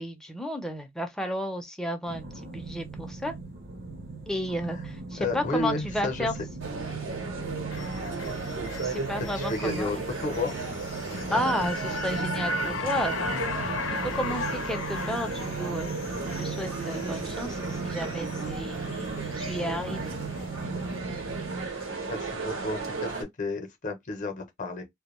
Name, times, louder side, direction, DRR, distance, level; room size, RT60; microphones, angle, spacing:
voice 1, 0.0-3.3 4.3-6.3 8.8-9.9 11.3-13.3 13.9-15.9 16.4-18.8 19.4-20.1, equal, 5° left, 0.5 m, -32 dB
sound 1, 2.1-21.7, right 3 dB, 55° right, 0.7 m, -38 dB
voice 2, 5.2-6.3 9.3-10.5 11.1-11.4 14.3-14.4 21.7-24.8, left 2 dB, 40° left, 0.7 m, -32 dB
sound 2, 6.6-23.2, right 3 dB, 75° right, 0.9 m, -35 dB
sound 3, 7.7-20.0 20.4-20.5, left 3 dB, 90° left, 0.6 m, -37 dB
2.2 x 2.2 x 3.0 m
head